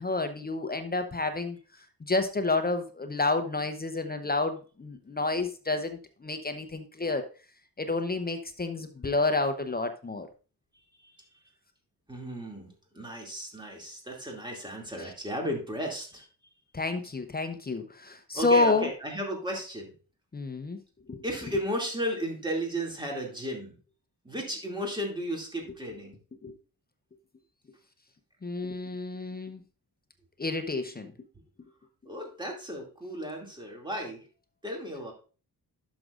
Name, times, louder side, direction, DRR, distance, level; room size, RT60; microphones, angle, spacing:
voice 1, 0.0-1.6 2.0-7.3 7.8-10.3 16.7-18.9 20.3-20.8 21.1-21.2 26.4-26.5 28.4-29.6 30.4-31.1, left 3 dB, 25° left, 8 dB, 0.7 m, -29 dB
voice 2, 12.1-16.3 18.3-19.9 21.2-23.8 24.2-26.2 32.1-34.3 34.6-35.1, equal, 10° right, 0 dB, 2.4 m, -34 dB
11.5 x 6.2 x 2.5 m, 0.36 s
wide cardioid pair, 115°, 39 cm